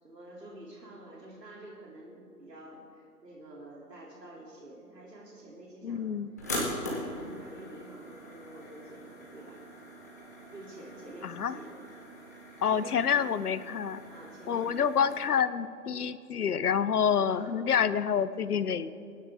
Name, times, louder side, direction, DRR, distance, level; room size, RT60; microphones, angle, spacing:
voice 1, 0.0-9.6 10.5-11.8 12.6-13.3 14.1-15.1 17.2-17.6, right 1 dB, 90° right, -4 dB, 3.1 m, -48 dB
voice 2, 5.8-6.3 11.2-11.6 12.6-14.0 14.5-18.9, left 7 dB, 70° left, 15 dB, 0.8 m, -28 dB
sound 1, 6.4-15.1, left 1 dB, 10° left, 0.8 m, -41 dB
23.0 x 9.7 x 3.6 m, 2.7 s
hypercardioid pair, 165°, 48 cm